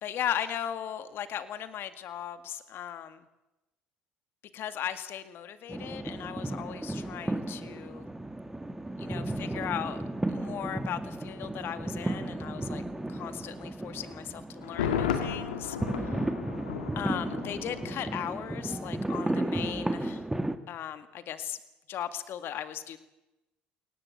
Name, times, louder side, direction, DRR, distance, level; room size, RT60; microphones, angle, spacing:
voice 1, 0.0-3.2 4.5-8.1 9.0-10.0 10.3-12.8 13.1-15.8 17.0-20.2 20.7-21.6 21.9-23.0, left 10 dB, 55° left, 11 dB, 2.0 m, -37 dB
sound 1, 5.7-20.6, right 1 dB, 10° right, 1.9 m, -34 dB
Thunder, 14.6-18.5 18.8-18.9, left 8 dB, 85° left, 2.3 m, -34 dB
22.5 x 18.5 x 8.7 m, 1.0 s
hypercardioid pair, 65°, 5 cm